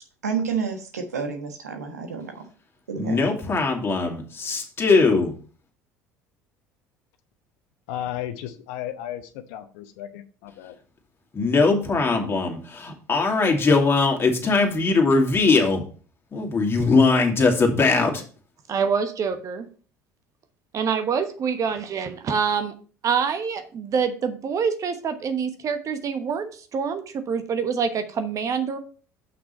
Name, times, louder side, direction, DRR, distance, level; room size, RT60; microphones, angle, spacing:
voice 1, 0.2-2.5 2.9-3.2, right 6 dB, 85° right, 1.3 m, -29 dB
voice 2, 3.0-5.3 11.3-15.8 16.3-18.2, left 3 dB, 30° left, 2.4 m, -20 dB
voice 3, 7.9-10.7, left 12 dB, 65° left, 0.9 m, -34 dB
voice 4, 18.7-19.7 20.7-22.7 23.0-28.8, right 6 dB, 40° right, 1.1 m, -26 dB
6.9 x 6.0 x 4.3 m
hypercardioid pair, 65°, 8 cm